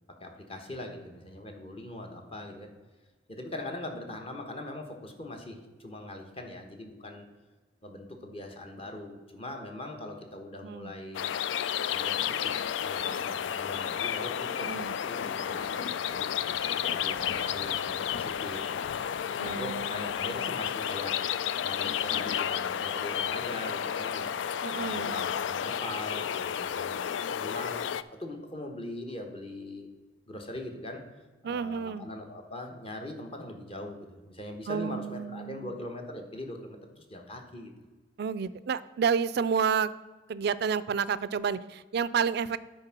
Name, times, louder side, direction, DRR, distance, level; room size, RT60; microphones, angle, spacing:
voice 1, 0.1-2.7 3.3-7.3 7.8-11.3 11.9-16.3 16.8-18.6 19.1-21.2 21.6-24.3 24.8-29.9 30.3-31.0 31.4-37.7, left 1 dB, 30° left, 3 dB, 1.2 m, -41 dB
voice 2, 10.6-10.9 14.6-14.9 19.4-20.6 24.6-25.3 31.4-32.1 34.7-35.7 38.2-39.9 40.3-42.6, right 6 dB, 60° right, 17 dB, 0.4 m, -30 dB
sound 1, 11.1-28.0, left 9 dB, 90° left, 0.3 m, -32 dB
9.7 x 4.4 x 5.9 m, 1.3 s
head